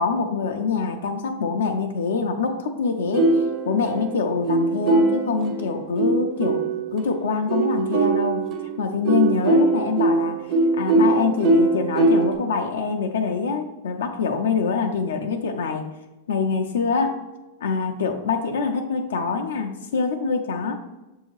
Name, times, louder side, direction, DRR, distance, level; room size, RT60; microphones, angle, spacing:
voice 1, 0.0-3.4 3.7-8.5 8.8-15.9 16.3-17.2 17.6-20.7, left 5 dB, 80° left, 4 dB, 0.4 m, -25 dB
sound 1, 3.1-7.0 7.5-12.3, right 2 dB, 45° right, 0.9 m, -21 dB
6.3 x 2.7 x 3.0 m, 1.1 s
hypercardioid pair, 110°, 0 cm